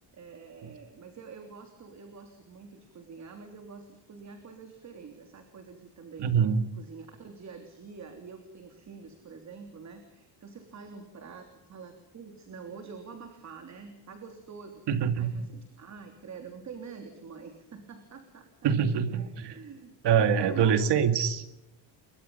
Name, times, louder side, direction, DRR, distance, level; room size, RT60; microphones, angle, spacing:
voice 1, 0.1-6.3 6.8-14.8 15.2-18.8 19.1-20.7, right 5 dB, 35° right, 6 dB, 3.3 m, -46 dB
voice 2, 6.2-6.7 14.9-15.4 18.6-19.6 20.0-21.4, right 7 dB, 60° right, 10 dB, 2.4 m, -25 dB
29.0 x 23.5 x 5.6 m, 0.86 s
cardioid pair, 160°, 46 cm